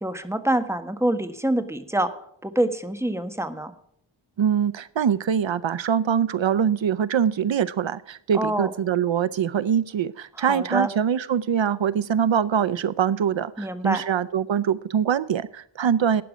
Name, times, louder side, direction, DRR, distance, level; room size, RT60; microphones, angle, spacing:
voice 1, 0.0-2.1 2.4-3.7 8.3-8.7 10.4-10.9 13.6-14.0, right 1 dB, 5° right, 8 dB, 1.4 m, -25 dB
voice 2, 4.4-16.2, right 8 dB, 80° right, 17 dB, 0.6 m, -23 dB
12.5 x 9.2 x 5.0 m, 0.68 s
wide cardioid pair, 65°, 45 cm